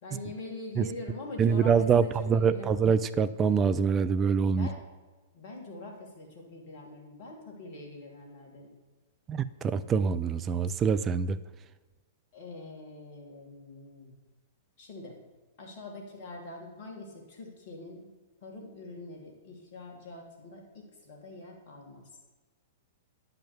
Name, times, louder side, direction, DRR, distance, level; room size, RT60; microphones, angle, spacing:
voice 1, 0.0-2.8 4.5-4.8 5.3-8.7 10.7-10.8 12.3-14.2 14.8-15.2 15.6-18.1 18.4-22.1, left 2 dB, 50° left, 0 dB, 2.9 m, -44 dB
voice 2, 1.4-2.0 2.3-4.7 9.3-11.4, right 6 dB, 25° right, 13 dB, 0.4 m, -25 dB
10.0 x 5.9 x 6.9 m, 1.2 s
figure-of-eight pair, 105°, 0 cm